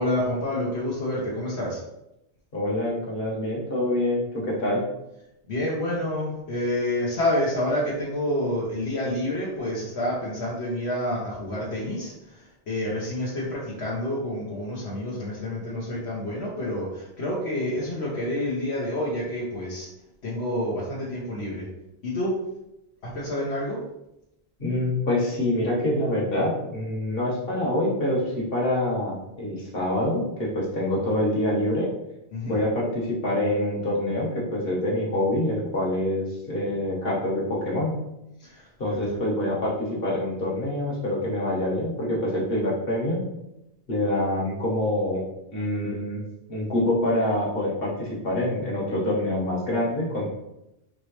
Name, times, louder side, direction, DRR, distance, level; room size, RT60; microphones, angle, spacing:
voice 1, 0.0-1.8 5.5-19.9 20.2-21.7 22.0-22.3 23.0-23.8 32.3-32.6 38.4-38.7 39.0-39.1, left 1 dB, 80° left, -6 dB, 1.3 m, -28 dB
voice 2, 2.5-4.8 24.6-31.9 32.4-37.9 38.8-43.2 43.9-45.2 45.5-46.2 46.5-50.3, left 1 dB, 60° left, -5 dB, 1.6 m, -26 dB
5.0 x 3.1 x 3.2 m, 0.86 s
omnidirectional pair, 1.1 m